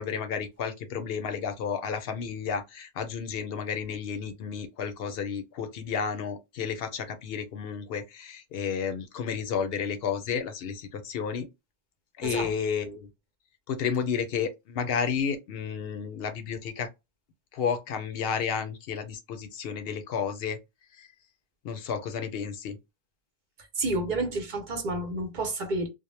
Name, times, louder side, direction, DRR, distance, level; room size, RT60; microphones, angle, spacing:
voice 1, 0.0-11.5 12.2-13.1 13.7-16.9 17.5-20.6 21.0-21.1 21.6-22.8, left 6 dB, 75° left, 0.8 m, -32 dB
voice 2, 23.8-25.9, right 2 dB, 55° right, 0.8 m, -30 dB
2.1 x 2.1 x 3.0 m
omnidirectional pair, 1.0 m